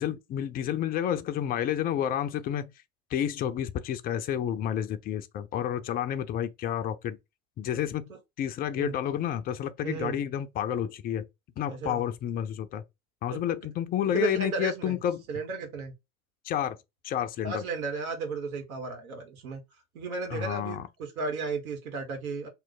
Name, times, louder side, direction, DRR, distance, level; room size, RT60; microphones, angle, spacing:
voice 1, 0.0-2.7 3.1-7.2 7.6-8.0 8.4-11.2 11.6-12.8 13.2-15.2 16.4-16.8 17.0-17.6 20.3-20.8, left 10 dB, 25° left, 0.3 m, -30 dB
voice 2, 9.8-10.2 11.7-12.0 13.3-13.4 14.1-15.0 15.3-15.9 17.4-19.6 19.9-22.5, right 4 dB, 70° right, 1.2 m, -34 dB
3.1 x 2.0 x 3.9 m
figure-of-eight pair, 80°, 43 cm